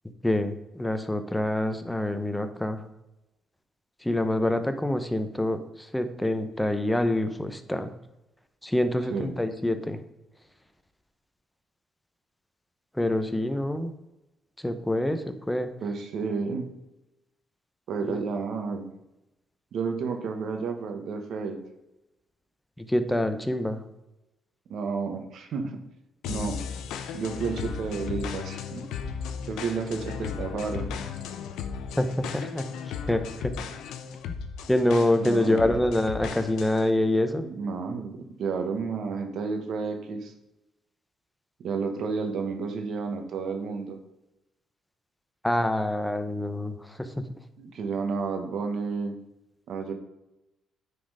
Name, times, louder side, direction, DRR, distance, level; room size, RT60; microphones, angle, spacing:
voice 1, 0.2-2.8 4.0-5.6 5.9-7.9 8.6-10.0 13.0-13.9 14.6-15.7 18.1-18.2 22.8-23.8 32.0-32.6 33.1-33.5 34.7-37.5 45.4-46.7 47.0-47.2, left 1 dB, 5° left, 9 dB, 0.9 m, -26 dB
voice 2, 15.8-16.7 17.9-18.9 19.7-21.6 24.7-25.8 26.3-26.6 27.1-28.8 29.4-30.9 35.2-35.8 37.4-40.3 41.6-44.0 47.6-49.2 49.7-49.9, right 5 dB, 70° right, 5 dB, 1.4 m, -31 dB
sound 1, 26.2-36.9, left 7 dB, 90° left, 0.7 m, -36 dB
9.7 x 4.3 x 5.0 m, 0.94 s
cardioid pair, 90°, 0 cm